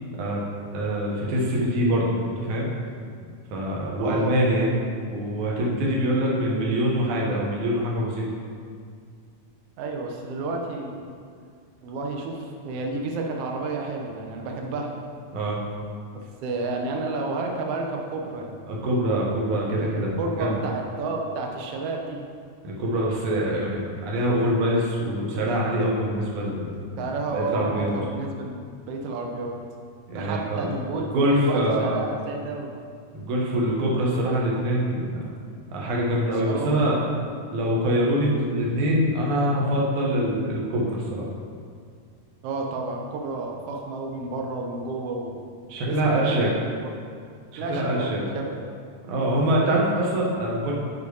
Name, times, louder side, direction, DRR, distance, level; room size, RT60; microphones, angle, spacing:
voice 1, 0.7-2.7 3.2-4.7 5.1-8.3 15.3-15.6 18.7-20.7 22.6-26.7 27.3-28.0 30.1-30.7 31.1-32.1 33.1-35.2 35.7-37.0 37.5-41.3 45.7-46.5 47.5-48.2 49.0-50.7, right 1 dB, 70° right, -3 dB, 2.5 m, -24 dB
voice 2, 4.0-4.4 9.8-11.1 11.8-14.9 16.1-18.6 20.2-22.2 27.0-29.5 30.1-32.7 36.3-37.0 42.4-45.4 45.9-46.9 47.6-48.6, right 3 dB, 90° right, 1 dB, 1.3 m, -31 dB
7.0 x 4.8 x 4.8 m, 2.2 s
omnidirectional pair, 3.7 m